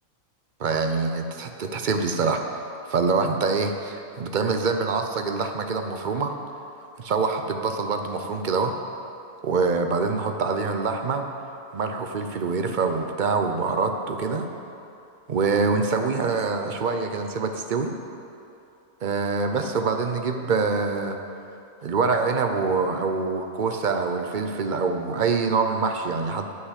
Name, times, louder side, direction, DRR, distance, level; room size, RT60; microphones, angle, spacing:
voice 1, 0.6-2.4 2.9-6.3 7.0-8.7 9.4-11.2 11.7-14.5 15.3-17.9 19.0-21.2 21.8-26.5, right 4 dB, 50° right, 5 dB, 0.6 m, -25 dB
9.5 x 5.7 x 8.2 m, 2.7 s
omnidirectional pair, 1.4 m